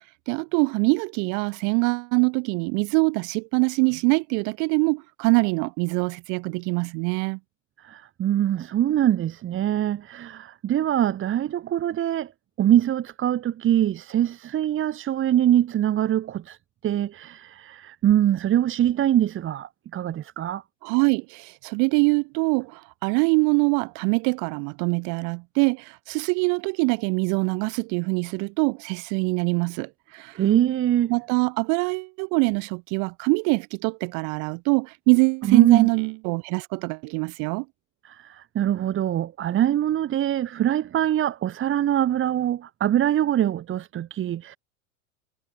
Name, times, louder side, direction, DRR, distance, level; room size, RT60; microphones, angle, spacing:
voice 1, 0.3-7.4 20.8-30.3 31.1-37.6, right 36 dB, 45° right, 6.7 m, -24 dB
voice 2, 7.8-12.3 12.6-16.6 16.8-20.6 30.4-31.2 35.4-35.9 38.0-44.6, right 11 dB, 30° right, 3.8 m, -23 dB
figure-of-eight pair, 85°, 41 cm